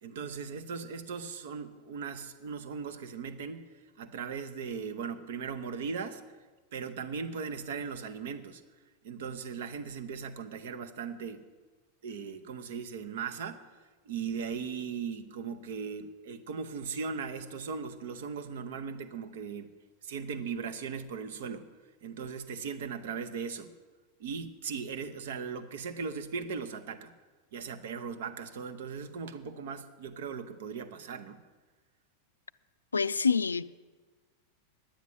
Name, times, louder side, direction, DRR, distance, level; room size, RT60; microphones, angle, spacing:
voice 1, 0.0-3.6 4.0-6.2 6.7-8.6 9.0-11.4 12.0-13.6 14.0-19.7 20.0-21.7 22.0-23.7 24.2-27.1 27.5-31.4, right 6 dB, 55° right, 0.9 m, -38 dB
voice 2, 32.9-33.7, left 5 dB, 75° left, 0.3 m, -26 dB
10.0 x 9.3 x 7.8 m
figure-of-eight pair, 90°, 0 cm